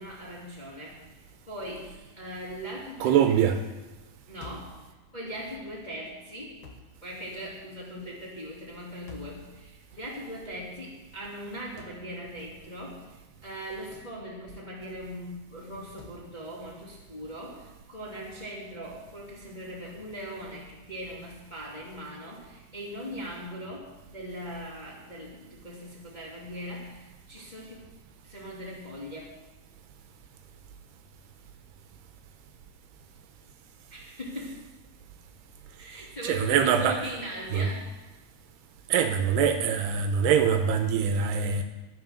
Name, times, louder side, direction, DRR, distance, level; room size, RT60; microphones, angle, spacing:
voice 1, 0.0-1.9 2.2-3.4 4.3-4.8 5.1-6.6 7.0-13.0 13.4-27.8 28.2-29.3 33.9-34.6 35.8-37.9, equal, 15° left, 2.0 m, -40 dB
voice 2, 3.0-3.6 36.2-37.0 37.5-37.7 38.9-41.6, right 7 dB, 80° right, 2.8 m, -23 dB
sound 1, 4.4-4.8 6.6-6.9 9.1-9.4 11.8-12.0 13.9-14.2 16.0-16.2, left 4 dB, 65° left, 1.5 m, -47 dB
11.5 x 10.5 x 6.4 m
omnidirectional pair, 4.9 m